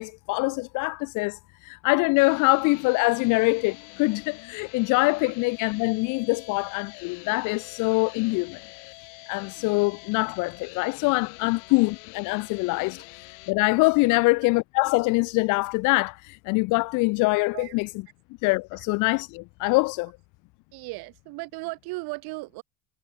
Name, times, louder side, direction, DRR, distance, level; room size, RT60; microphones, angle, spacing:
voice 1, 0.0-8.6 9.3-17.9 18.4-20.1, left 26 dB, 45° left, 0.4 m, -24 dB
sound 1, 2.1-13.5, left 37 dB, 75° left, 5.2 m, -46 dB
voice 2, 20.7-22.6, right 24 dB, 55° right, 2.0 m, -36 dB
cardioid pair, 180°, 44 cm